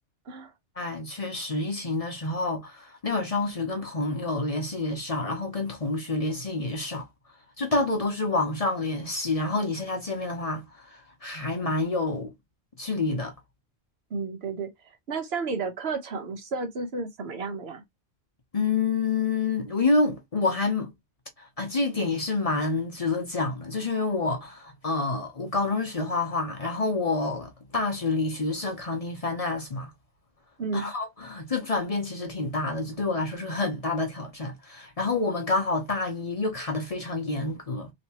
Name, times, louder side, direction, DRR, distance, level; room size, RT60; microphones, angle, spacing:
voice 1, 0.8-7.1 7.6-12.3 12.8-13.3 18.5-20.9 21.4-29.9 30.7-37.9, left 3 dB, 35° left, 0.7 m, -28 dB
voice 2, 14.1-17.8 30.6-30.9, right 4 dB, 70° right, 1.1 m, -32 dB
3.2 x 2.8 x 2.8 m
omnidirectional pair, 1.1 m